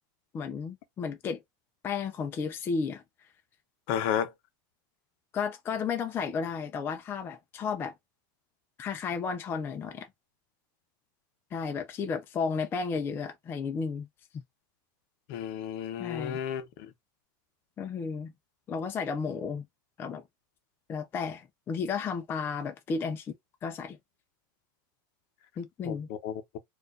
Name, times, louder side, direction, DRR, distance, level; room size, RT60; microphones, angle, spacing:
voice 1, 0.3-1.4 1.8-3.0 5.3-7.9 8.8-10.1 11.5-14.1 16.0-16.4 17.8-18.3 18.7-19.6 20.0-20.2 20.9-23.3 23.6-24.0 25.6-26.1, left 5 dB, 20° left, 0.4 m, -33 dB
voice 2, 3.9-4.3 15.3-16.6 25.8-26.0 26.2-26.6, left 9 dB, 50° left, 0.7 m, -32 dB
4.3 x 2.4 x 2.5 m
supercardioid pair, 150°, 11 cm